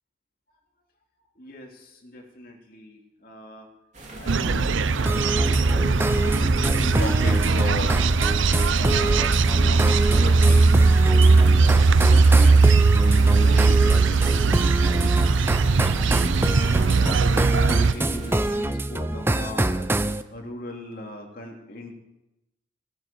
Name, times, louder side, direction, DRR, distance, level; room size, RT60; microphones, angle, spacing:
voice 1, 1.4-3.7 4.2-8.3 8.7-10.7 11.1-12.7 13.1-15.2 16.4-19.9 20.3-21.9, left 1 dB, 45° left, 2 dB, 2.8 m, -38 dB
sound 1, 3.9-18.6, right 1 dB, 35° right, 3.4 m, -39 dB
sound 2, 4.3-17.9, right 3 dB, 75° right, 0.6 m, -19 dB
sound 3, 5.1-20.2, right 1 dB, 10° right, 0.5 m, -26 dB
18.0 x 11.0 x 6.9 m, 0.95 s
head